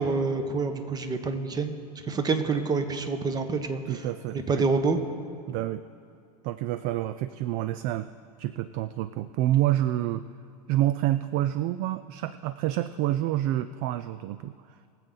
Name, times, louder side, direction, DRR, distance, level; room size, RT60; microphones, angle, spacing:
voice 1, 0.0-1.7 2.1-4.0 4.5-5.0, right 4 dB, 20° right, 8 dB, 1.1 m, -27 dB
voice 2, 3.9-4.6 5.5-5.8 6.4-8.1 8.4-10.3 10.7-14.5, right 14 dB, 40° right, 14 dB, 0.4 m, -28 dB
22.5 x 7.5 x 3.9 m, 2.5 s
hypercardioid pair, 115°, 21 cm